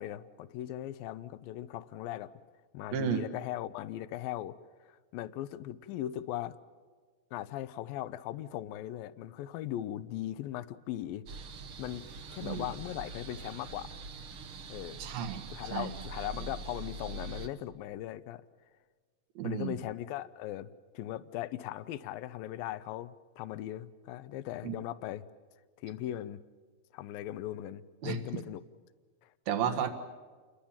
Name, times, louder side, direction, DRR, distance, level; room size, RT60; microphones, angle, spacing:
voice 1, 0.0-2.3 2.7-4.6 4.9-6.6 7.3-11.3 11.8-12.1 12.3-14.0 14.7-15.0 15.5-18.4 19.4-20.7 20.9-25.3 25.8-26.4 26.9-28.6 29.2-29.3 29.6-29.9, left 13 dB, 80° left, 15 dB, 2.5 m, -39 dB
voice 2, 2.9-3.2 12.4-12.7 15.0-15.5 15.7-15.9 19.4-19.8 24.6-24.7 28.0-28.2 29.5-29.9, right 8 dB, 75° right, 5 dB, 3.4 m, -32 dB
sound 1, 11.3-17.5, right 4 dB, 60° right, 1.4 m, -44 dB
29.0 x 22.0 x 7.3 m, 1.5 s
omnidirectional pair, 4.2 m